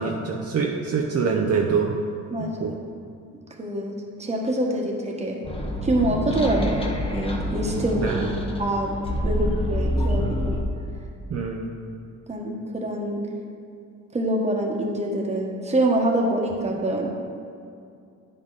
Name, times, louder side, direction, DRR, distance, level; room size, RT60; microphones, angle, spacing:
voice 1, 0.0-1.9 2.6-2.7 8.0-8.3 11.3-11.7, right 5 dB, 55° right, 0 dB, 0.7 m, -25 dB
voice 2, 3.6-5.4 5.8-6.9 7.1-8.2 8.6-9.0 9.2-10.6 12.3-13.3 14.1-17.1, right 1 dB, 20° right, 0 dB, 1.3 m, -25 dB
sound 1, 5.4-10.6, left 1 dB, 20° left, 1.0 m, -26 dB
9.2 x 5.4 x 4.0 m, 2.4 s
cardioid pair, 90°, 30 cm